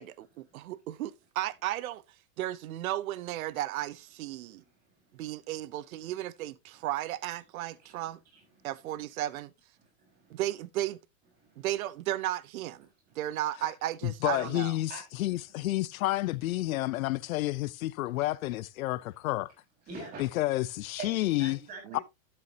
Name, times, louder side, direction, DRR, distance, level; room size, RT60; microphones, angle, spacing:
voice 1, 0.0-2.0 2.4-4.6 5.1-8.2 8.6-9.5 10.3-11.0 11.6-12.9 13.1-14.7 21.8-22.0, right 14 dB, 85° right, 0.8 m, -34 dB
voice 2, 8.3-8.7 9.8-10.4 11.4-11.7 13.1-13.2 14.9-15.0 19.9-20.3 21.0-22.0, right 4 dB, 20° right, 4.2 m, -45 dB
voice 3, 14.0-19.5 20.2-21.6 21.9-22.0, left 17 dB, 85° left, 0.7 m, -30 dB
12.0 x 6.9 x 2.8 m
supercardioid pair, 175°, 41 cm